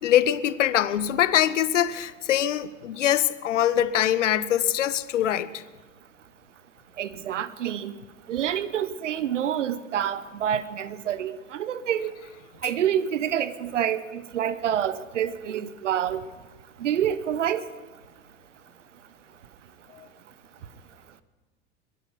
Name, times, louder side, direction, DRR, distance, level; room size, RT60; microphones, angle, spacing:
voice 1, 0.0-5.5, left 11 dB, 75° left, 0.8 m, -23 dB
voice 2, 7.0-7.9 8.3-12.1 12.6-16.2 16.8-17.6, right 10 dB, 75° right, 0.9 m, -27 dB
22.5 x 11.5 x 5.3 m
figure-of-eight pair, 80°, 37 cm